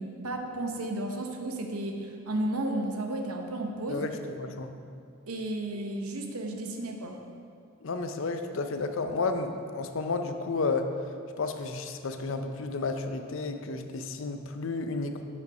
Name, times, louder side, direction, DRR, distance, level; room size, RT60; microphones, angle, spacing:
voice 1, 0.0-4.1 5.3-7.2, right 1 dB, 85° right, 3 dB, 0.8 m, -33 dB
voice 2, 3.9-4.7 7.8-10.9 11.4-15.2, left 3 dB, 60° left, 7 dB, 0.5 m, -32 dB
6.5 x 5.5 x 5.3 m, 2.3 s
head